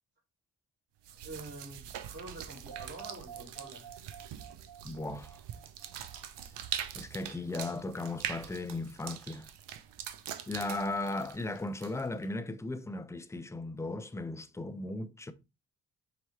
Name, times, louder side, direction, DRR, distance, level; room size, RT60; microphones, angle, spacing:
sound 1, 1.0-12.2, right 10 dB, 80° right, 0.6 m, -43 dB
voice 1, 1.2-3.9, right 2 dB, 25° right, 1.9 m, -47 dB
sound 2, 2.7-6.7, right 9 dB, 60° right, 1.1 m, -50 dB
voice 2, 4.8-5.4 6.9-9.5 10.5-15.3, left 2 dB, 5° left, 0.4 m, -36 dB
4.6 x 2.9 x 3.1 m
cardioid pair, 65°, 41 cm